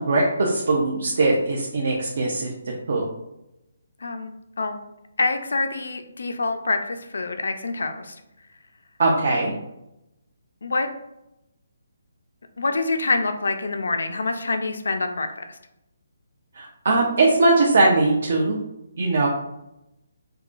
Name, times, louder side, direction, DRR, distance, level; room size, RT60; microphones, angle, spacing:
voice 1, 0.0-2.5 2.9-3.0 9.0-9.5 16.5-18.6 19.0-19.3, right 2 dB, 50° right, -2 dB, 0.5 m, -20 dB
voice 2, 4.0-4.3 4.6-4.8 5.2-8.2 10.6-10.9 12.6-15.6, left 3 dB, 80° left, 7 dB, 0.4 m, -26 dB
4.7 x 2.2 x 2.5 m, 0.88 s
hypercardioid pair, 175°, 0 cm